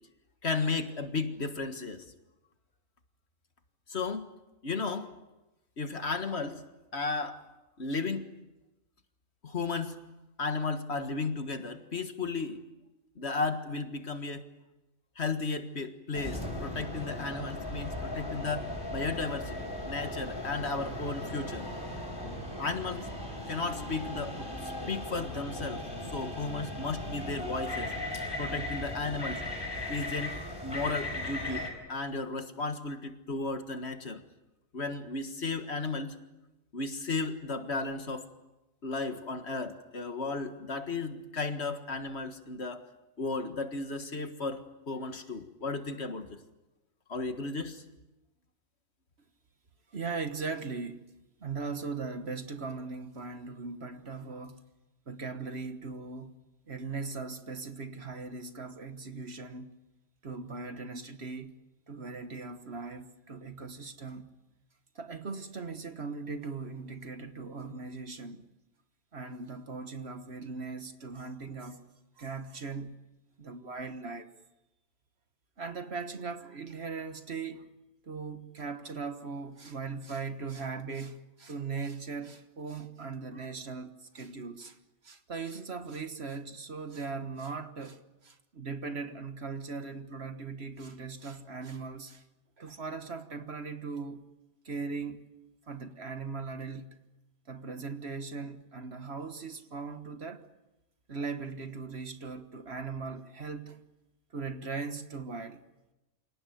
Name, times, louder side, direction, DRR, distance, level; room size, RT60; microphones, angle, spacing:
voice 1, 0.4-2.0 3.9-4.2 4.6-5.1 5.8-6.6 6.9-7.4 7.8-8.3 9.4-10.0 10.4-12.6 13.2-14.4 15.2-19.6 19.8-21.6 22.6-23.1 23.5-25.8 26.1-27.9 28.4-29.4 29.9-30.3 30.6-34.2 34.7-36.2 36.7-38.3 38.8-42.8 43.2-46.4 47.1-47.8, left 3 dB, 50° left, 1.9 m, -34 dB
sound 1, 16.1-31.7, left 1 dB, 15° left, 4.8 m, -37 dB
voice 2, 49.9-51.1 51.4-54.6 55.1-56.4 56.7-59.7 60.2-61.5 61.9-64.3 64.9-68.4 69.1-71.8 72.2-73.0 73.4-74.3 75.6-77.7 78.0-84.8 85.0-92.2 92.6-94.2 94.6-95.2 95.7-97.0 97.5-100.4 101.1-103.8 104.3-105.6, right 4 dB, 50° right, 1.5 m, -39 dB
28.0 x 18.0 x 9.3 m
omnidirectional pair, 1.4 m